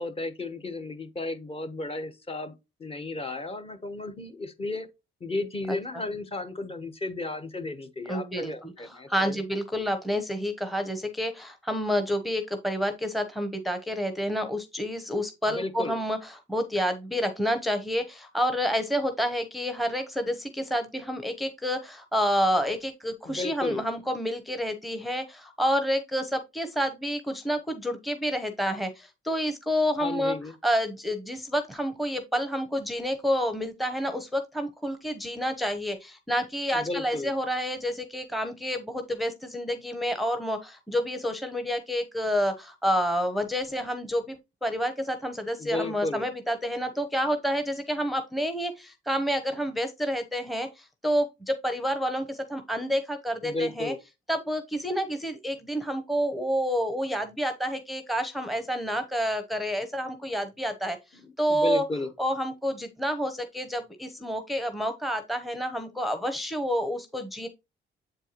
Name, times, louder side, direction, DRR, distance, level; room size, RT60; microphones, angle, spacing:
voice 1, 0.0-2.5 2.8-4.9 5.2-9.4 15.5-16.0 23.2-23.8 30.0-30.5 36.7-37.3 45.6-46.2 53.4-54.0 61.2-62.1, left 2 dB, 30° left, 1.1 m, -33 dB
voice 2, 8.1-30.3 30.6-44.4 44.6-53.9 54.3-61.0 61.4-61.8 62.2-67.5, equal, ahead, 0.8 m, -29 dB
7.7 x 4.5 x 3.0 m
cardioid pair, 90°, 20 cm